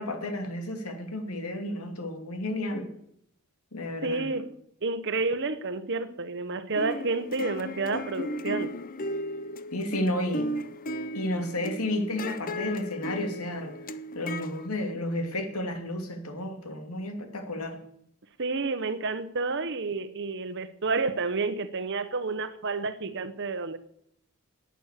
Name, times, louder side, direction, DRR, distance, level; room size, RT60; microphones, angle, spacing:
voice 1, 0.0-2.9 3.7-4.3 9.7-10.5 11.1-13.7 14.1-17.8, left 1 dB, 90° left, 5 dB, 2.6 m, -32 dB
voice 2, 4.0-4.5 4.8-8.7 18.4-23.8, right 3 dB, 55° right, 12 dB, 1.0 m, -30 dB
sound 1, 6.7-14.7, left 1 dB, 40° left, 0.7 m, -35 dB
11.5 x 9.2 x 8.2 m, 0.72 s
head